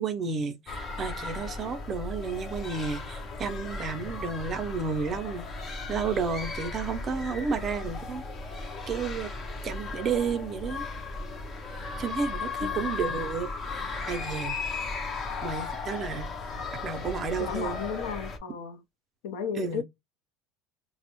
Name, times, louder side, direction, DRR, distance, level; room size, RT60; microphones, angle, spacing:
voice 1, 0.0-8.2 8.9-9.3 9.6-10.8 12.0-14.6 15.4-16.3 16.8-17.8 19.6-19.8, right 5 dB, 25° right, 0.5 m, -32 dB
sound 1, 0.7-18.4, left 3 dB, 25° left, 0.5 m, -36 dB
voice 2, 17.4-18.8 19.2-19.8, left 7 dB, 85° left, 0.5 m, -34 dB
3.4 x 2.0 x 2.8 m
cardioid pair, 160°, 0 cm